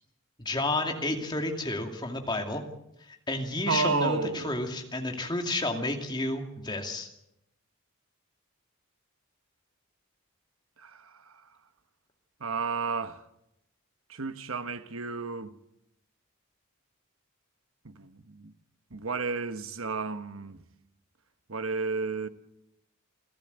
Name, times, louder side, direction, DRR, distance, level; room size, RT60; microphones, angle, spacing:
voice 1, 0.4-2.6 3.1-7.1, left 2 dB, 20° left, 2.4 m, -31 dB
voice 2, 3.7-4.5 10.8-11.5 12.4-13.2 14.1-15.5 17.8-18.5 18.9-20.6 21.5-22.3, right 4 dB, 75° right, 1.2 m, -32 dB
29.0 x 12.5 x 8.0 m
head